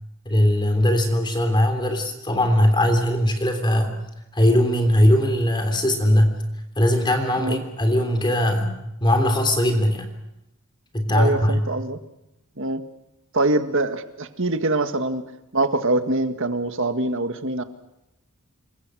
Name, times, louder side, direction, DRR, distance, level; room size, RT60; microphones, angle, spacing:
voice 1, 0.2-3.9 4.3-6.4 6.8-10.1 10.9-11.6, left 1 dB, 20° left, 6 dB, 3.3 m, -20 dB
voice 2, 11.1-12.0 12.6-12.8 13.3-15.2 15.5-17.6, right 2 dB, 65° right, 8 dB, 1.9 m, -24 dB
28.0 x 23.5 x 6.3 m, 0.88 s
head